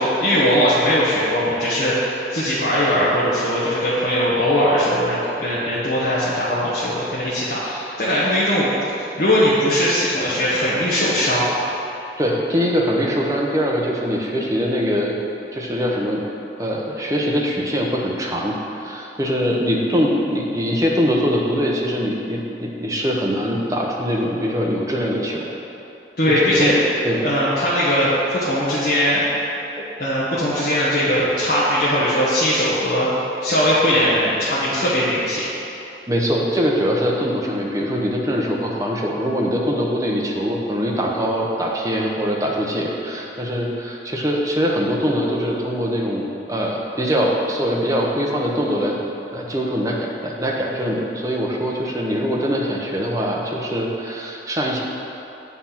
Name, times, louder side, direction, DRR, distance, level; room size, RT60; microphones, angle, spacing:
voice 1, 0.0-8.7 9.0-11.5 26.2-26.7 27.2-29.2 30.0-33.1 33.4-35.5, equal, 55° left, -11 dB, 1.3 m, -20 dB
voice 2, 12.2-15.2 15.5-16.2 16.6-25.5 26.6-26.7 27.0-27.2 29.8-29.9 36.1-48.9 49.3-54.8, equal, 20° right, -2 dB, 0.8 m, -22 dB
8.3 x 4.3 x 5.7 m, 2.9 s
head